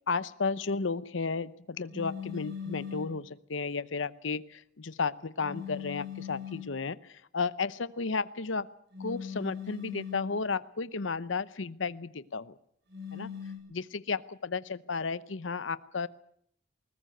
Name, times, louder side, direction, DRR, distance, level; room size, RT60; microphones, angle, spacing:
voice 1, 0.1-8.7 9.0-12.5 13.1-13.3 13.7-16.1, left 4 dB, 75° left, 16 dB, 0.8 m, -33 dB
sound 1, 1.9-3.2 5.4-6.8 8.9-10.4 12.9-13.6, left 8 dB, 60° right, 7.9 m, -40 dB
21.0 x 19.5 x 7.9 m, 0.65 s
head